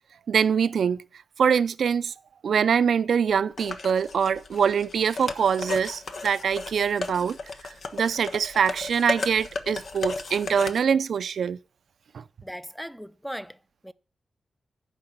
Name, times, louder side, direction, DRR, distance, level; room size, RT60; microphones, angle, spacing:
voice 1, 0.3-1.0 1.4-2.1 2.4-7.4 7.9-11.6 12.1-12.2, right 7 dB, 80° right, 0.5 m, -24 dB
sound 1, 3.6-10.8, left 3 dB, 70° left, 1.1 m, -34 dB
voice 2, 12.4-13.9, equal, ahead, 0.6 m, -38 dB
11.5 x 4.9 x 7.8 m
cardioid pair, 65°, 0 cm